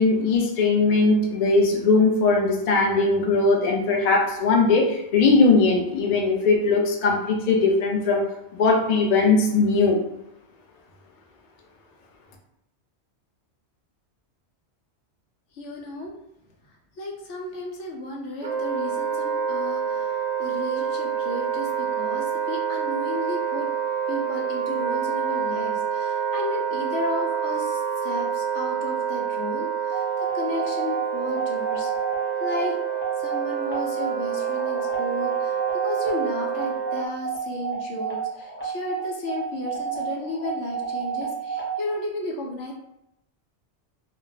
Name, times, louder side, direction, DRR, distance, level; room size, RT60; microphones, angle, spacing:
voice 1, 0.0-8.3 8.5-10.0, left 3 dB, 50° left, 1 dB, 0.5 m, -20 dB
voice 2, 15.5-16.1 17.0-23.7 24.1-31.9 32.4-32.8 33.2-42.7, left 2 dB, 85° left, 0 dB, 1.0 m, -33 dB
Wind instrument woodwind instrument, 18.4-37.0, right 7 dB, 60° right, 0.6 m, -27 dB
sound 1, 29.9-41.9, right 5 dB, 10° left, 0.9 m, -33 dB
2.4 x 2.2 x 3.9 m, 0.81 s
omnidirectional pair, 1.2 m